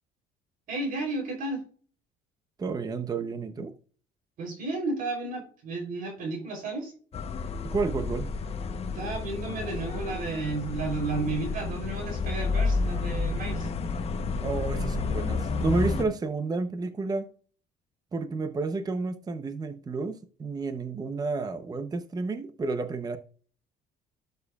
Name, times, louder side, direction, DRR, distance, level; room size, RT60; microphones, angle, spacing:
voice 1, 0.7-1.6 4.4-6.9 8.9-13.7, right 3 dB, 55° right, 3.5 m, -32 dB
voice 2, 2.6-3.7 7.6-8.3 14.4-17.3 18.1-23.2, right 3 dB, 20° right, 0.7 m, -31 dB
sound 1, 7.1-16.0, left 4 dB, 35° left, 0.9 m, -30 dB
12.0 x 6.7 x 2.4 m
cardioid pair, 125°, 17 cm